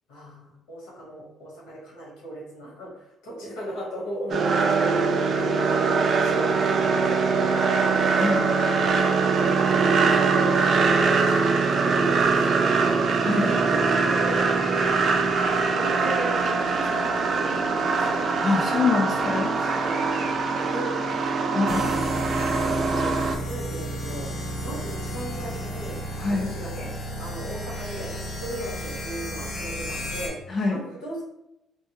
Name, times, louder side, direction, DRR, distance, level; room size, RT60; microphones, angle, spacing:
voice 1, 0.1-5.9 6.2-7.6 8.0-8.9 9.3-10.8 11.0-13.0 13.4-18.3 19.6-20.0 20.5-21.8 22.5-24.3 24.6-26.0 26.3-26.9 27.2-31.2, right 1 dB, 90° left, -4 dB, 1.4 m, -37 dB
sound 1, 4.3-23.3, right 4 dB, 50° right, 0.4 m, -22 dB
Crow, 11.8-17.4, equal, 10° right, 0.8 m, -40 dB
voice 2, 13.2-13.5 18.4-19.5 21.5-21.8 26.2-26.5 30.5-30.8, left 4 dB, 35° left, -1 dB, 0.5 m, -24 dB
sound 2, 21.7-30.3, equal, 55° left, 0.9 m, -33 dB
3.1 x 2.2 x 3.0 m, 0.84 s
cardioid pair, 115°, 0 cm